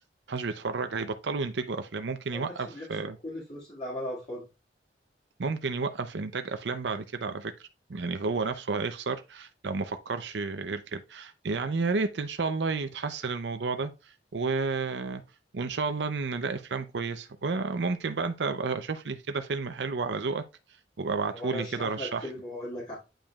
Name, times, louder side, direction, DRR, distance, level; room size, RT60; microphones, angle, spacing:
voice 1, 0.3-3.2 5.4-15.2 15.5-20.4 21.0-22.3, right 4 dB, 75° right, 0.6 m, -31 dB
voice 2, 2.3-2.9 3.2-4.4 21.3-22.9, left 1 dB, 35° left, 2.0 m, -38 dB
8.8 x 5.1 x 2.3 m
head